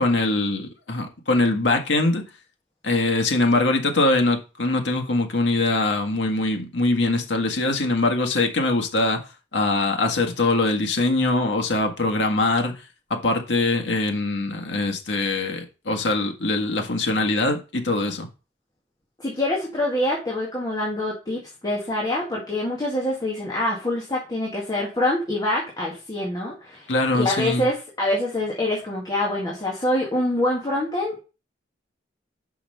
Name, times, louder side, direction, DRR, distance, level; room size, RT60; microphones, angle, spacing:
voice 1, 0.0-2.2 2.8-9.2 9.5-12.7 13.1-18.3 26.9-27.7, left 2 dB, 85° left, 1.6 m, -22 dB
voice 2, 19.2-31.2, left 1 dB, 20° left, 1.9 m, -25 dB
5.7 x 5.6 x 5.3 m
head